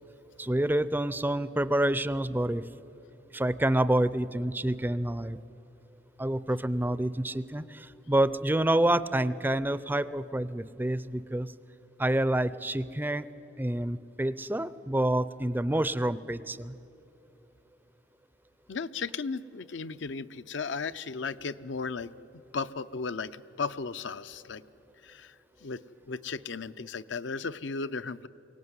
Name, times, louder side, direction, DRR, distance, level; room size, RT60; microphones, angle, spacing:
voice 1, 0.4-2.7 3.3-5.4 6.2-11.5 12.0-13.3 13.6-16.8, right 1 dB, 10° right, 16 dB, 0.5 m, -28 dB
voice 2, 18.7-22.1 22.5-24.6 25.0-25.3 25.6-25.8 26.1-28.3, left 4 dB, 70° left, 12 dB, 0.6 m, -35 dB
23.5 x 17.5 x 9.6 m, 2.8 s
head